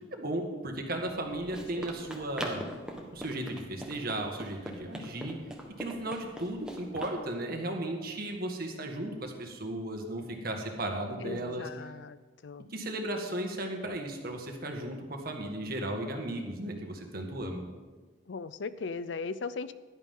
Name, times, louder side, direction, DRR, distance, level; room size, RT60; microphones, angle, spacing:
voice 1, 0.1-2.6 3.1-5.4 5.8-11.7 12.7-17.6, right 1 dB, 55° right, 2 dB, 1.9 m, -35 dB
Run, 1.0-7.2, equal, 5° right, 1.5 m, -42 dB
voice 2, 1.5-2.2 11.2-12.7 18.3-19.7, left 4 dB, 75° left, 15 dB, 0.5 m, -39 dB
16.0 x 11.5 x 3.8 m, 1.3 s
head